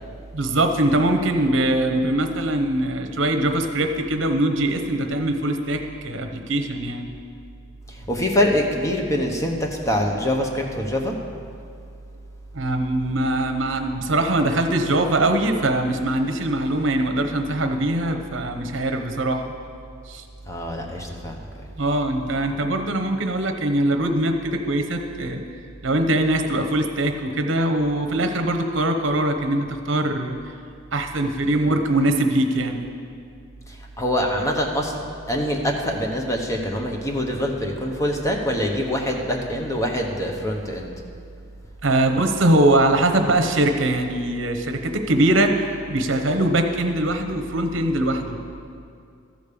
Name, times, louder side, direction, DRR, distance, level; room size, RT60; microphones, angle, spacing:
voice 1, 0.3-7.1 12.5-19.4 20.1-20.2 21.8-25.4 25.8-30.4 30.9-32.8 41.8-48.4, right 1 dB, 65° right, 5 dB, 0.9 m, -22 dB
voice 2, 7.9-11.2 20.5-21.4 33.7-40.9, equal, 15° left, 1 dB, 0.9 m, -24 dB
13.5 x 5.2 x 6.8 m, 2.4 s
head